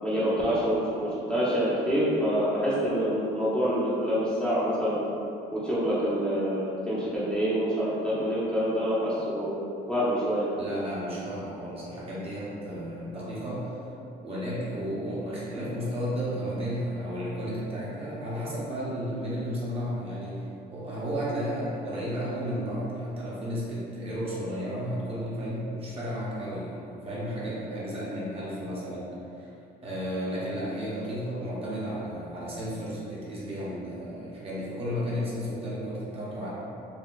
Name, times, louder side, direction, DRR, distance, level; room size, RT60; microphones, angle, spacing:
voice 1, 0.0-5.0 5.5-9.5 9.9-10.5, equal, 5° left, -10 dB, 0.7 m, -26 dB
voice 2, 10.6-13.8 14.2-20.5 20.7-29.5 29.8-36.5, equal, 35° right, -8 dB, 0.9 m, -33 dB
4.0 x 2.3 x 2.3 m, 2.7 s
cardioid pair, 110°, 17 cm